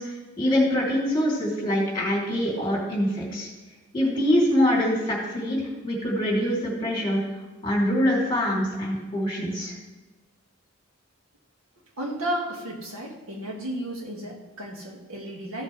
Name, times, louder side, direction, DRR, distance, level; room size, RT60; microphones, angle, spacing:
voice 1, 0.0-3.5 3.9-5.6 5.8-7.2 7.6-9.7, equal, 20° left, -4 dB, 3.1 m, -24 dB
voice 2, 12.0-15.6, right 1 dB, 80° right, -1 dB, 2.0 m, -33 dB
14.5 x 7.3 x 3.3 m, 1.1 s
head